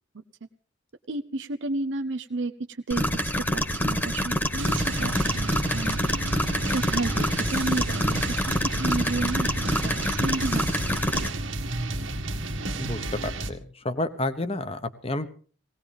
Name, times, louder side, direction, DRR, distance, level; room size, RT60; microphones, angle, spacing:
voice 1, 1.1-6.0 6.7-9.5 9.8-11.4, right 2 dB, 70° right, 8 dB, 0.7 m, -32 dB
sound 1, 2.9-11.3, equal, 10° left, 1.4 m, -27 dB
sound 2, 4.6-13.5, right 2 dB, 90° right, 1.7 m, -31 dB
voice 2, 12.8-13.6 13.8-15.3, left 2 dB, 30° left, 11 dB, 1.0 m, -30 dB
19.0 x 17.5 x 3.5 m, 0.41 s
head